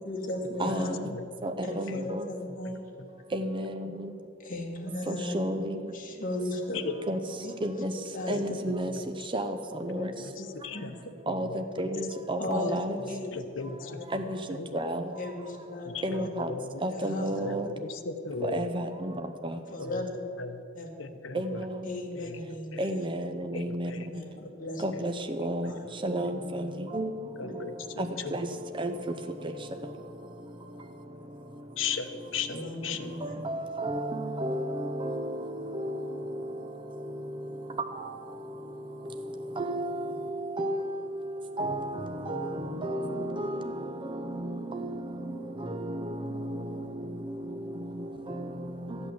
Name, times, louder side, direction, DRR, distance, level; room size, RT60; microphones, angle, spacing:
voice 1, 0.0-1.0 1.6-2.8 4.4-5.4 5.9-6.8 7.4-7.5 8.1-8.6 9.8-10.1 10.4-10.5 10.7-10.9 12.4-13.4 13.8-13.9 15.2-16.3 16.9-17.8 19.7-20.2 20.8-20.9 21.9-23.0 24.1-24.8 25.7-25.9 27.4-27.5 32.5-33.5, left 2 dB, 45° left, -1 dB, 2.0 m, -36 dB
voice 2, 0.6-1.0 1.4-2.2 3.3-4.1 5.1-5.8 7.1-7.2 7.6-7.9 8.3-8.9 9.3-10.1 11.3-13.0 14.1-14.4 14.7-15.0 16.0-16.5 16.8-17.7 18.4-19.1 19.4-19.6 21.3-21.8 22.8-23.9 24.8-25.1 25.4-25.7 26.0-27.1 28.0-28.5 28.8-28.9 33.2-36.3 37.1-37.2 38.0-38.1 38.6-40.3 40.6-41.2 41.6-43.5 44.1-45.0 45.6-45.9 46.4-46.6 48.3-49.0, right 1 dB, 25° right, 7 dB, 0.7 m, -32 dB
voice 3, 2.5-3.1 6.7-7.0 8.3-9.0 10.0-11.0 11.3-11.6 13.0-14.7 15.8-16.8 17.3-18.7 19.8-20.6 21.0-21.7 22.1-22.4 22.7-22.8 23.5-24.1 24.9-25.0 25.6-25.7 27.4-28.4 31.8-33.1, left 5 dB, 70° left, 9 dB, 0.9 m, -38 dB
14.0 x 8.5 x 7.4 m, 2.5 s
head